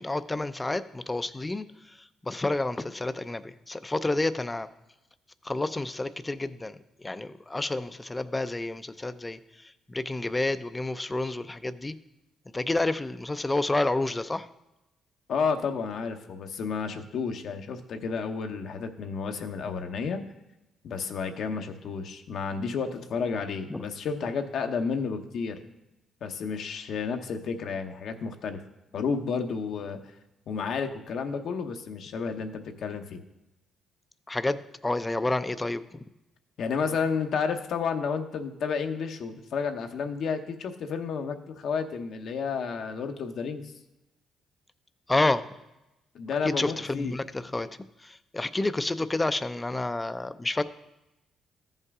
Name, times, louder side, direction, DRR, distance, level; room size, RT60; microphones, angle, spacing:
voice 1, 0.0-4.7 5.4-12.0 12.5-14.5 23.7-23.8 34.3-36.0 45.1-45.5 46.4-50.6, left 2 dB, 15° left, 12 dB, 0.4 m, -30 dB
voice 2, 15.3-20.2 20.8-25.6 26.2-28.6 28.9-30.1 30.5-33.2 36.6-43.7 46.1-47.2, left 5 dB, 65° left, 6 dB, 0.9 m, -31 dB
14.0 x 5.5 x 3.6 m, 0.95 s
cardioid pair, 90°, 0 cm